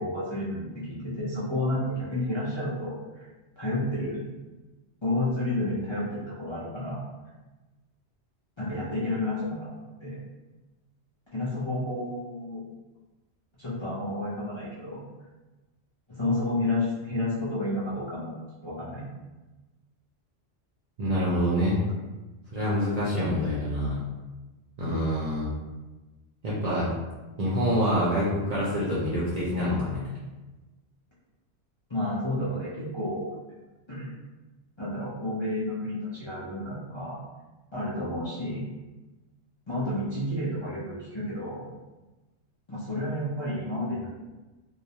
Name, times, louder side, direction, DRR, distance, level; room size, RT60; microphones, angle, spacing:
voice 1, 0.0-3.3 3.6-4.2 5.0-7.0 8.6-9.7 10.0-10.2 11.3-12.6 13.6-15.0 16.2-18.4 18.6-19.1 31.9-33.2 33.9-34.1 34.8-37.2 37.7-38.6 39.7-41.6 42.7-44.1, left 1 dB, 40° left, -10 dB, 0.4 m, -30 dB
voice 2, 21.0-21.8 22.5-24.0 24.8-25.5 26.4-26.9 27.4-30.0, equal, 55° right, -8 dB, 0.5 m, -26 dB
2.3 x 2.0 x 2.7 m, 1.1 s
omnidirectional pair, 1.1 m